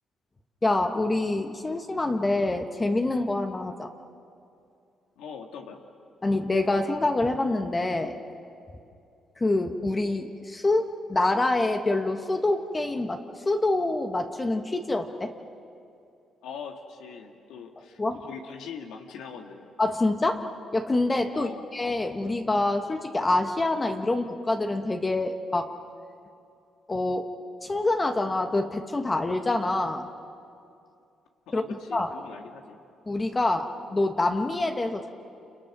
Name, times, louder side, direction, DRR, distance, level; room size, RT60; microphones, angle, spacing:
voice 1, 0.6-3.9 6.2-8.2 9.4-15.3 18.0-18.2 19.8-20.4 20.7-25.7 26.9-27.3 27.6-30.1 31.5-31.6 31.9-32.1 33.1-35.1, left 2 dB, 25° left, 5 dB, 1.4 m, -26 dB
voice 2, 5.2-5.8 16.4-19.7 21.3-21.8 31.5-32.8, left 6 dB, 90° left, 3 dB, 2.0 m, -42 dB
30.0 x 27.5 x 6.1 m, 2.5 s
cardioid pair, 90°, 0 cm